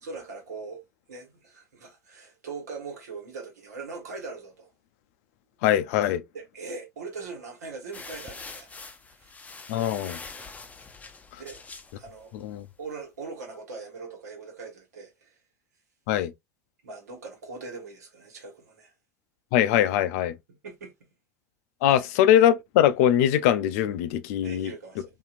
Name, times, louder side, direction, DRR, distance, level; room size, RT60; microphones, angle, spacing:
voice 1, 0.0-4.7 6.3-8.8 9.1-9.3 11.4-11.6 12.0-12.3 12.8-15.4 16.8-18.9 20.5-20.9 22.0-22.1 24.4-25.0, right 4 dB, 80° right, 1.2 m, -41 dB
voice 2, 5.6-6.2 9.7-10.2 12.4-12.6 16.1-16.3 19.5-20.4 21.8-24.7, left 11 dB, 65° left, 0.4 m, -22 dB
sound 1, 7.9-12.6, left 4 dB, 15° left, 0.6 m, -44 dB
2.8 x 2.5 x 2.4 m
hypercardioid pair, 80°, 9 cm